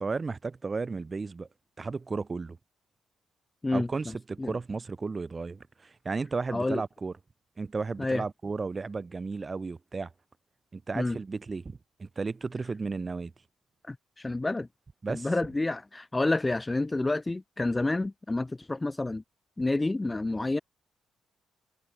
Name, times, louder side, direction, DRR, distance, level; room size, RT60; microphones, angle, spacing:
voice 1, 0.0-1.5 1.8-2.6 3.7-7.1 7.6-10.1 10.7-13.3 15.0-15.3, right 4 dB, 30° right, 1.3 m, -34 dB
voice 2, 3.6-4.5 6.5-6.8 8.0-8.2 10.9-11.2 13.8-14.7 15.1-19.2 19.6-20.6, left 2 dB, 15° left, 0.6 m, -29 dB
cardioid pair, 90°, 0 cm